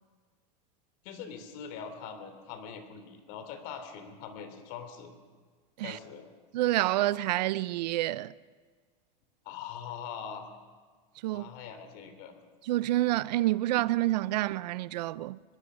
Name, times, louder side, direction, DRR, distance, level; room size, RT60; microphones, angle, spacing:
voice 1, 1.0-5.1 5.8-6.3 9.4-10.5 11.3-12.3, left 7 dB, 50° left, 3.2 m, -42 dB
voice 2, 6.5-8.3 11.2-11.5 12.7-15.4, right 16 dB, 85° right, 0.6 m, -28 dB
23.0 x 21.0 x 6.3 m
supercardioid pair, 160°, 21 cm